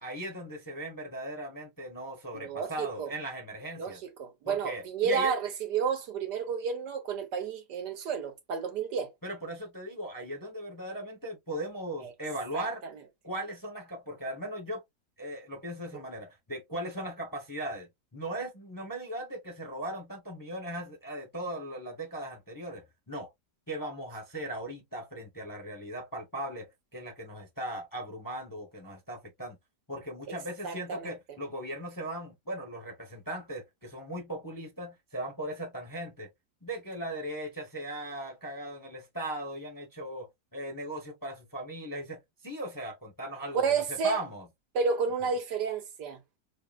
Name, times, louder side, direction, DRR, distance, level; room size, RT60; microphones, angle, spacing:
voice 1, 0.0-4.0 4.5-5.4 9.2-12.8 13.2-14.8 15.2-23.3 23.7-29.6 29.9-36.3 36.6-44.5, right 1 dB, 15° left, 0.7 m, -38 dB
voice 2, 2.3-3.1 3.8-9.1 12.0-12.1 12.5-12.6 30.3-30.4 30.6-31.1 43.5-44.2 44.7-46.2, right 5 dB, 75° right, 1.6 m, -31 dB
5.6 x 2.2 x 2.3 m
omnidirectional pair, 1.8 m